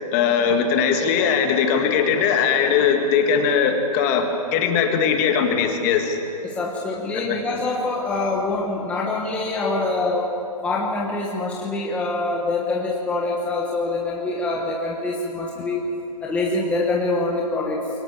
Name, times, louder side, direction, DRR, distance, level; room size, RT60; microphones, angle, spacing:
voice 1, 0.1-6.2 7.3-7.4, left 6 dB, 25° left, 4 dB, 1.8 m, -20 dB
voice 2, 6.4-10.3 10.6-15.8 16.2-17.9, left 2 dB, 5° left, -3 dB, 1.4 m, -25 dB
23.0 x 18.5 x 7.4 m, 2.8 s
hypercardioid pair, 160°, 20 cm